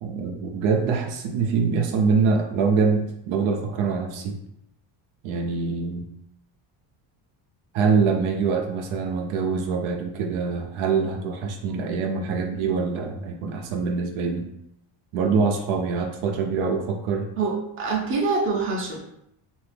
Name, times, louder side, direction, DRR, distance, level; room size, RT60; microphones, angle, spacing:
voice 1, 0.0-4.4 5.2-6.1 7.7-14.5 15.1-17.3, right 5 dB, 75° right, 3 dB, 0.7 m, -24 dB
voice 2, 17.4-19.1, right 4 dB, 25° right, -1 dB, 0.6 m, -26 dB
2.8 x 2.6 x 3.3 m, 0.77 s
cardioid pair, 150°, 48 cm